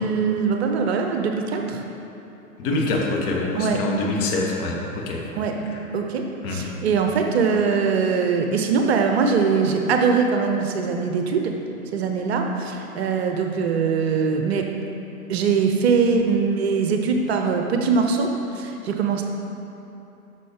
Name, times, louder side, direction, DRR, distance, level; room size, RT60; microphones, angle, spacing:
voice 1, 0.0-1.8 3.5-3.8 5.3-5.5 5.9-6.2 6.5-11.5 11.9-14.7 15.3-19.2, right 5 dB, 45° right, 3 dB, 0.9 m, -22 dB
voice 2, 2.6-5.2 6.4-6.7, left 2 dB, 40° left, -2 dB, 1.7 m, -25 dB
12.5 x 6.4 x 3.7 m, 2.9 s
figure-of-eight pair, 105°, 44 cm